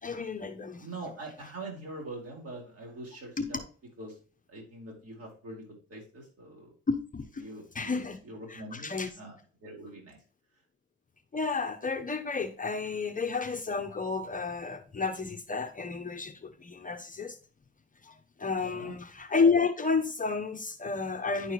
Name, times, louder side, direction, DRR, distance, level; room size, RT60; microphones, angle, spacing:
voice 1, 0.0-0.9 1.4-1.5 3.4-3.5 6.9-7.4 7.7-8.2 8.5-9.1 11.3-17.4 18.0-21.5, left 4 dB, 25° left, 0.9 m, -31 dB
voice 2, 0.8-3.6 4.0-4.2 4.5-6.7 7.4-9.3 9.6-10.2 18.6-18.9, right 2 dB, 50° right, 4.3 m, -43 dB
10.0 x 4.7 x 3.0 m
cardioid pair, 90°, 30 cm